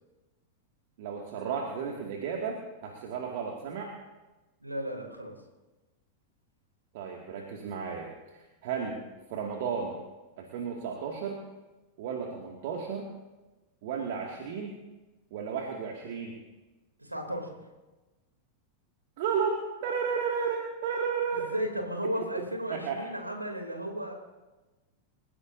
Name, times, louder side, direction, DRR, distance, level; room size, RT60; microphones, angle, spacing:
voice 1, 1.0-3.9 6.9-9.0 9.3-10.0 10.4-11.4 12.0-13.1 13.8-14.8 15.3-16.4 19.2-21.5 22.7-23.0, right 6 dB, 50° right, 0 dB, 2.4 m, -33 dB
voice 2, 4.6-5.4 17.0-17.6 21.5-24.1, equal, 85° right, 3 dB, 3.3 m, -34 dB
29.0 x 16.0 x 2.8 m, 1.1 s
figure-of-eight pair, 90°, 0 cm